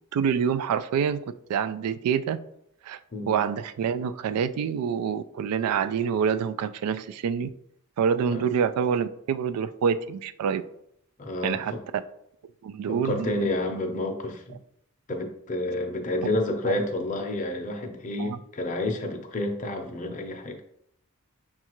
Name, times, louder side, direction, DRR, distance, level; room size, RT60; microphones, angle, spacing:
voice 1, 0.1-1.2 1.5-2.4 2.8-3.0 3.3-7.5 8.0-10.6 11.4-11.7 12.6-13.3 16.7-16.8 18.2-18.4, right 7 dB, 85° right, 0.3 m, -26 dB
voice 2, 11.2-11.8 12.9-14.6 15.1-20.6, left 2 dB, 35° left, 0.6 m, -30 dB
6.3 x 2.4 x 2.9 m
head